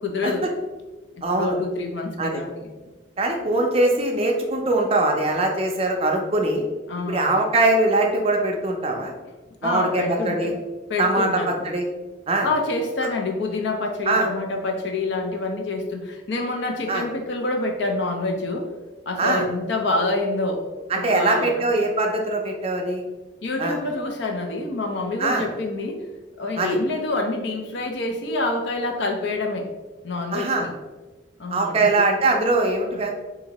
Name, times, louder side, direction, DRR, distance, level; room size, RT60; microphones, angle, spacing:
voice 1, 0.0-0.5 1.2-2.7 6.9-7.3 9.6-10.6 10.9-11.6 12.4-18.7 19.1-20.7 21.0-21.6 23.4-26.0 26.4-29.7 30.0-30.7 31.4-31.9, left 2 dB, 65° left, 3 dB, 0.5 m, -27 dB
voice 2, 1.2-1.6 2.2-2.4 3.2-6.6 7.1-9.1 9.6-10.5 11.0-11.9 12.3-12.5 14.1-14.3 16.9-17.0 19.2-19.4 20.9-23.0 23.6-23.8 25.2-25.4 26.6-26.8 30.3-30.7 31.5-33.1, right 2 dB, 30° right, 2 dB, 0.4 m, -22 dB
2.8 x 2.5 x 4.0 m, 1.2 s
head